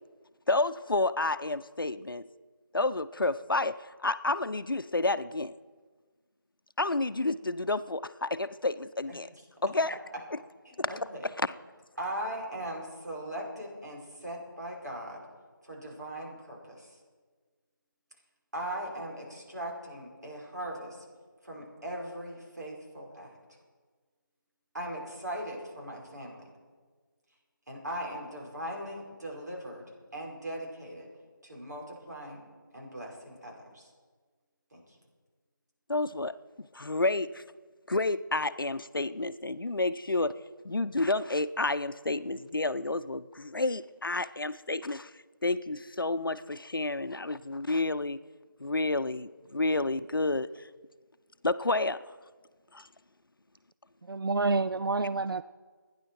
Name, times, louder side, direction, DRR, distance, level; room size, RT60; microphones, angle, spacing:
voice 1, 0.5-2.3 2.7-5.5 6.8-9.3 9.6-9.9 10.3-10.4 10.8-11.0 11.4-11.5 35.9-37.4 37.9-40.4 40.6-45.1 45.4-48.2 48.6-50.7 51.4-52.2 52.7-52.9, left 2 dB, 80° left, 14 dB, 0.7 m, -30 dB
voice 2, 10.7-11.2 12.0-15.2 15.6-16.9 18.5-21.1 21.4-23.3 24.7-26.5 27.7-29.8 30.1-31.1 31.4-32.4 32.7-33.9 34.7-34.8, right 1 dB, 55° right, -2 dB, 5.2 m, -39 dB
voice 3, 54.1-55.4, right 3 dB, 90° right, 14 dB, 0.5 m, -28 dB
27.5 x 10.5 x 4.6 m, 1.5 s
figure-of-eight pair, 180°, 11 cm